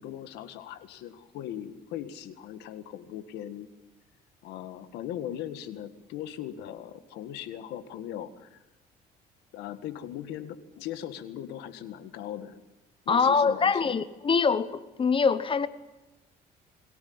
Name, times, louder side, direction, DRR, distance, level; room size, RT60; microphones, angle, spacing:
voice 1, 0.0-3.7 4.4-8.6 9.5-12.6 13.1-14.0, left 11 dB, 85° left, 10 dB, 1.8 m, -39 dB
voice 2, 13.1-15.7, left 5 dB, 30° left, 14 dB, 1.0 m, -24 dB
22.5 x 17.5 x 9.6 m, 1.1 s
cardioid pair, 110°, 17 cm